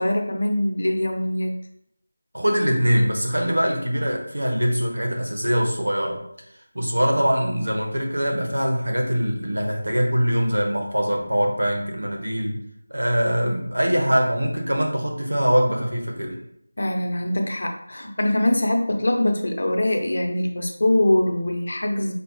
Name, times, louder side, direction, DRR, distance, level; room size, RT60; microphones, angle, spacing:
voice 1, 0.0-1.5 16.8-22.1, left 1 dB, 60° left, 3 dB, 0.8 m, -23 dB
voice 2, 2.3-6.2 6.7-12.6 12.9-16.4, equal, 85° right, 1 dB, 1.4 m, -23 dB
5.3 x 2.8 x 3.2 m, 0.73 s
figure-of-eight pair, 170°, 0 cm